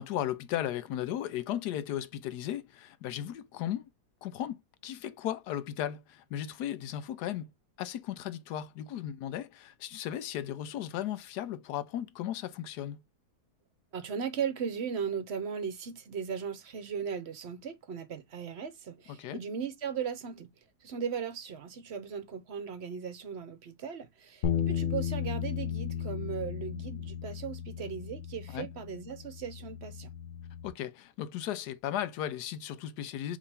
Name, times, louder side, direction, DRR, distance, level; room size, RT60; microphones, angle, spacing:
voice 1, 0.0-3.9 4.2-7.5 7.8-13.0 19.1-19.4 28.5-28.7 30.6-33.4, left 11 dB, 80° left, 1.2 m, -36 dB
voice 2, 13.9-20.5 20.8-30.1, right 7 dB, 55° right, 0.8 m, -37 dB
sound 1, 24.4-30.7, left 8 dB, 55° left, 1.1 m, -35 dB
4.9 x 2.9 x 3.3 m
omnidirectional pair, 1.7 m